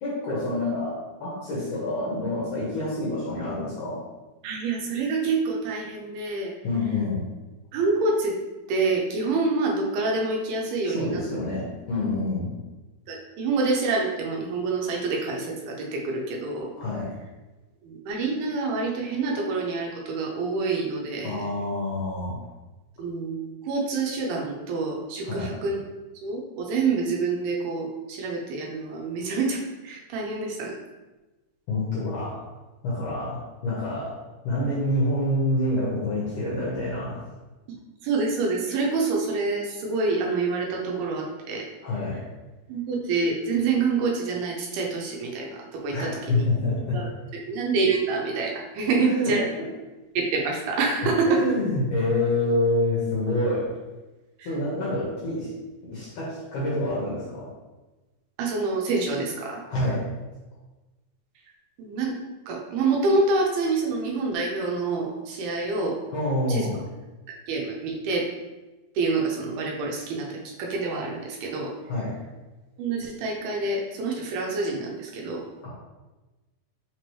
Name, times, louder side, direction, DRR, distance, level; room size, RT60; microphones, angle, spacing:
voice 1, 0.0-4.0 6.6-7.2 10.9-12.5 16.8-17.1 21.2-22.4 25.2-25.5 31.7-32.5 32.8-34.1 34.4-37.2 41.8-42.2 45.9-47.0 49.0-49.4 51.3-53.7 54.4-55.5 55.8-57.5 59.7-60.0 66.1-66.7 71.9-72.1 75.6-75.7, left 1 dB, 70° left, -7 dB, 2.0 m, -27 dB
voice 2, 4.4-6.5 7.7-8.4 8.7-11.2 13.1-16.7 17.8-21.4 23.0-25.8 26.2-30.8 37.7-41.7 42.7-47.1 47.5-49.5 50.2-51.4 54.4-54.5 58.4-59.6 61.8-62.2 62.5-66.0 66.5-66.8 67.3-68.3 69.0-71.7 72.8-75.4, right 3 dB, 80° right, -1 dB, 2.6 m, -27 dB
5.9 x 3.0 x 3.0 m, 1.1 s
omnidirectional pair, 4.7 m